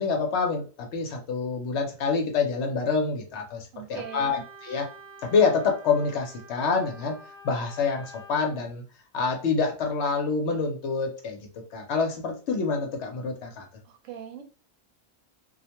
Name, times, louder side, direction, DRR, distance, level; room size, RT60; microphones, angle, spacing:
voice 1, 0.0-4.9 5.2-7.2 7.4-8.8 9.1-11.4 11.7-13.6, left 4 dB, 65° left, 3 dB, 0.8 m, -27 dB
voice 2, 3.7-4.4 13.8-14.4, right 9 dB, 80° right, 4 dB, 1.0 m, -40 dB
Wind instrument woodwind instrument, 3.9-8.6, right 1 dB, 35° left, 0.9 m, -48 dB
2.4 x 2.1 x 2.8 m, 0.37 s
omnidirectional pair, 1.3 m